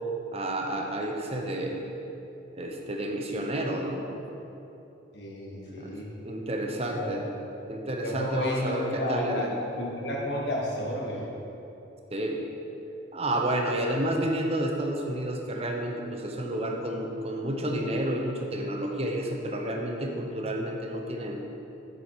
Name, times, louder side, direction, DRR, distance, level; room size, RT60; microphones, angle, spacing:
voice 1, 0.3-1.8 2.5-4.0 5.7-6.0 6.2-7.2 7.7-9.5 12.1-12.4 13.1-21.4, right 1 dB, 35° right, 2 dB, 0.8 m, -30 dB
voice 2, 5.1-6.1 6.8-7.2 8.0-11.2, left 1 dB, 65° left, -2 dB, 1.6 m, -32 dB
7.7 x 6.9 x 4.7 m, 2.9 s
head